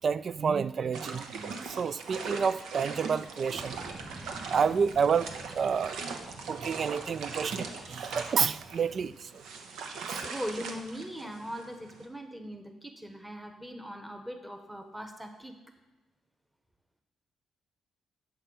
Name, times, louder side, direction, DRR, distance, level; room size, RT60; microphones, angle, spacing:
voice 1, 0.0-3.8 4.5-6.0 6.4-9.4 9.8-10.3, right 6 dB, 50° right, 17 dB, 0.3 m, -29 dB
sound 1, 0.9-12.0, right 4 dB, 80° right, 0.9 m, -40 dB
sound 2, 3.5-9.1, right 2 dB, 25° right, 2.3 m, -49 dB
voice 2, 10.2-15.5, equal, 5° right, 6 dB, 1.0 m, -40 dB
7.6 x 5.8 x 6.8 m, 1.1 s
cardioid pair, 90°, 0 cm